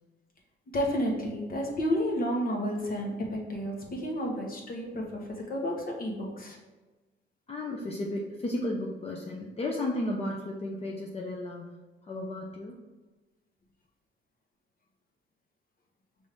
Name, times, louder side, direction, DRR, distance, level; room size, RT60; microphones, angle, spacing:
voice 1, 0.7-6.6, equal, 45° left, -1 dB, 1.1 m, -31 dB
voice 2, 7.5-11.7 12.1-12.8, left 1 dB, 30° left, -1 dB, 0.6 m, -33 dB
5.2 x 2.6 x 3.4 m, 1.2 s
cardioid pair, 90°, 20 cm